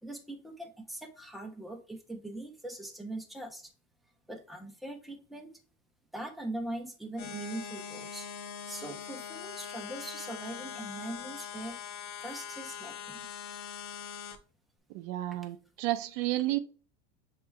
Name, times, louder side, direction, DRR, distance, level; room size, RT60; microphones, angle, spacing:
voice 1, 0.0-3.7 4.3-5.6 6.1-8.3 8.7-11.8 12.2-13.3, right 1 dB, ahead, 0.7 m, -41 dB
sound 1, 7.2-14.4, left 8 dB, 55° left, 0.7 m, -42 dB
voice 2, 14.9-16.6, right 16 dB, 65° right, 0.5 m, -31 dB
6.7 x 3.2 x 2.3 m
supercardioid pair, 150°, 20 cm